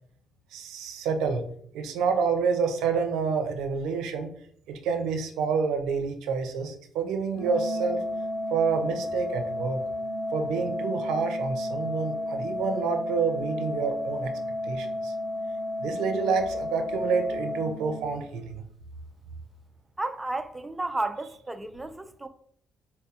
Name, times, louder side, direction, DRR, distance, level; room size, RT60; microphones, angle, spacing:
voice 1, 0.5-1.4 1.7-4.3 4.7-8.0 8.5-9.8 10.3-14.3 14.6-15.1 15.8-18.6, right 5 dB, 90° right, 0.5 m, -28 dB
Organ, 7.4-18.4, left 1 dB, 45° left, 0.5 m, -32 dB
voice 2, 20.0-22.3, right 2 dB, 15° right, 0.3 m, -32 dB
4.1 x 2.2 x 2.8 m
cardioid pair, 90°, 0 cm